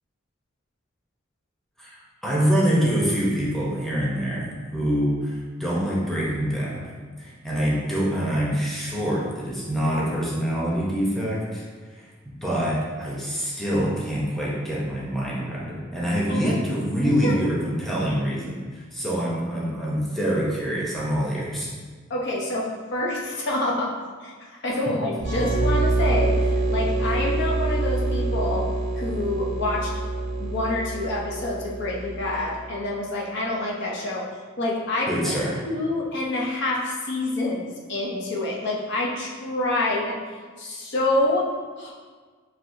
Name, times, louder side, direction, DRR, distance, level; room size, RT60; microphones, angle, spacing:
voice 1, 1.8-6.9 7.2-21.7 24.9-25.0 35.1-35.6, equal, ahead, -6 dB, 0.7 m, -25 dB
voice 2, 17.0-17.4 22.1-22.7 22.9-23.9 24.2-24.3 24.6-28.6 29.0-29.9 30.4-34.2 34.6-35.3 35.7-40.1 40.6-41.4 41.8-41.9, left 2 dB, 60° left, -3 dB, 0.7 m, -27 dB
sound 1, 25.2-32.7, right 2 dB, 50° right, 0.6 m, -26 dB
5.9 x 2.7 x 2.7 m, 1.5 s
head